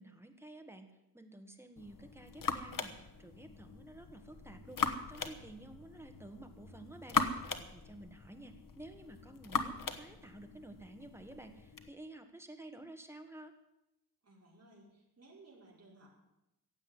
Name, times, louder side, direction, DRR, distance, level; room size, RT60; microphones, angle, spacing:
voice 1, 0.0-4.8 5.1-13.5, right 1 dB, 5° right, 6 dB, 1.6 m, -52 dB
sound 1, 1.8-11.9, left 5 dB, 55° left, 1.3 m, -40 dB
voice 2, 14.2-16.1, right 2 dB, 40° right, -4 dB, 4.8 m, -59 dB
16.0 x 8.1 x 9.8 m, 0.90 s
wide cardioid pair, 150°, 38 cm